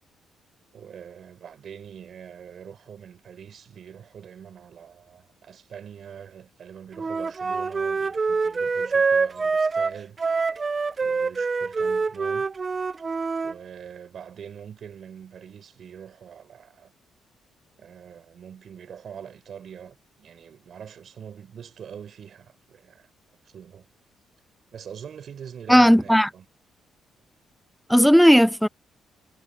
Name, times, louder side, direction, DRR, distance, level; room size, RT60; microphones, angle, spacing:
voice 1, 0.7-10.2 11.0-12.5 13.4-16.9 17.8-23.1 23.4-23.9 24.7-26.5, right 8 dB, 60° right, 5.6 m, -43 dB
Wind instrument woodwind instrument, 7.0-13.5, right 4 dB, 30° right, 1.0 m, -25 dB
voice 2, 25.7-26.3 27.9-28.7, equal, ahead, 0.3 m, -15 dB
cardioid pair, 90°, 0 cm